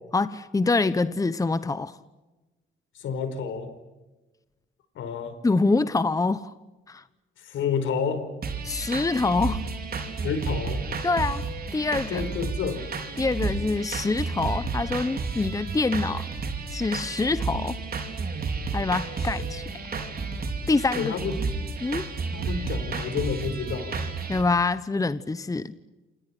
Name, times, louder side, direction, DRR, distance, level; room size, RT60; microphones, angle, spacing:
voice 1, 0.1-1.9 5.4-6.5 6.9-7.0 8.6-9.6 11.0-11.4 11.7-12.2 13.2-16.3 16.7-17.8 18.7-19.6 20.7-21.1 21.8-22.1 24.3-25.7, left 3 dB, 15° left, 14 dB, 1.0 m, -25 dB
voice 2, 2.9-3.7 4.9-5.4 7.4-8.3 10.2-10.8 12.1-12.9 19.9-20.1 20.9-21.4 22.3-24.1, left 6 dB, 75° left, 10 dB, 5.0 m, -30 dB
sound 1, 8.4-24.4, right 4 dB, 50° right, 4.7 m, -31 dB
28.5 x 28.0 x 6.1 m, 1.1 s
cardioid pair, 90°, 20 cm